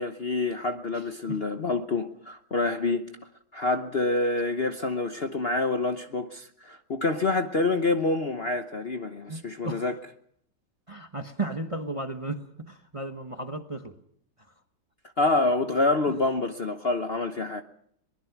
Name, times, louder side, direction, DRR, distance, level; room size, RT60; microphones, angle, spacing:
voice 1, 0.0-3.1 3.5-10.0 15.2-17.6, left 3 dB, 40° left, 0.9 m, -27 dB
voice 2, 9.3-9.9 10.9-14.0, right 2 dB, 20° right, 1.0 m, -34 dB
23.0 x 21.0 x 5.9 m
omnidirectional pair, 2.0 m